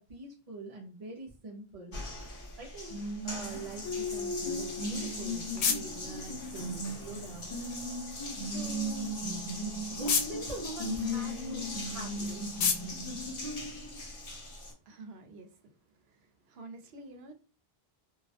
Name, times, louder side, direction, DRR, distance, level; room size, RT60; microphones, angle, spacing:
voice 1, 0.1-2.0 2.6-7.6 8.4-9.2 9.9-12.5, right 2 dB, 50° right, -2 dB, 0.5 m, -44 dB
Water tap faucet, 1.9-14.7, left 1 dB, 60° left, 1.0 m, -36 dB
sound 1, 4.8-14.2, left 6 dB, 90° left, 0.8 m, -37 dB
voice 2, 14.9-15.7 15.9-17.3, right 2 dB, 75° right, 7 dB, 0.8 m, -49 dB
2.3 x 2.0 x 2.7 m, 0.33 s
omnidirectional pair, 1.1 m